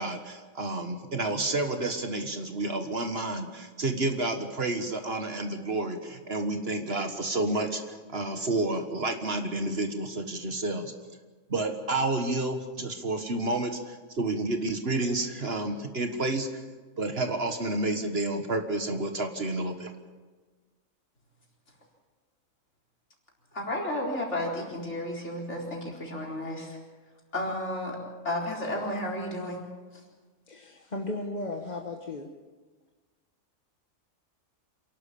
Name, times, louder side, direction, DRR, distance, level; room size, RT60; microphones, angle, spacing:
voice 1, 0.0-10.9 11.5-16.5 17.0-19.9, right 2 dB, 50° right, 6 dB, 1.7 m, -30 dB
voice 2, 23.5-26.8 27.3-28.0 28.2-29.7 29.9-30.1, left 1 dB, 55° left, -2 dB, 4.6 m, -32 dB
voice 3, 30.5-32.3, left 2 dB, 35° left, 3 dB, 1.3 m, -35 dB
27.0 x 12.0 x 8.5 m, 1.4 s
omnidirectional pair, 1.4 m